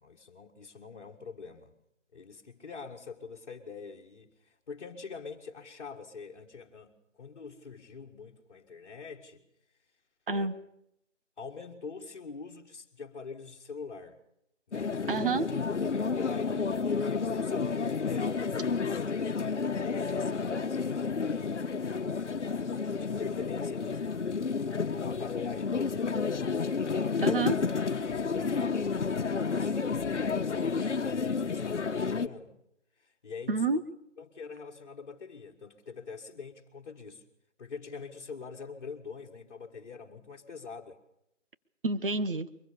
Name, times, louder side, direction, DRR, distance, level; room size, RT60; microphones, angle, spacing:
voice 1, 0.0-1.7 2.1-9.4 10.3-10.5 11.4-14.2 14.7-15.0 16.0-21.8 22.9-24.2 25.0-26.3 27.1-27.4 28.0-32.6 33.0-33.6 34.2-37.2 37.6-41.0, left 5 dB, 45° left, -2 dB, 1.9 m, -44 dB
sound 1, 14.7-32.3, left 5 dB, 65° left, 1.2 m, -31 dB
voice 2, 15.1-15.5 27.2-27.6 33.5-33.8 41.8-42.5, right 3 dB, 45° right, 11 dB, 1.2 m, -28 dB
23.5 x 21.0 x 6.8 m, 0.79 s
figure-of-eight pair, 165°, 37 cm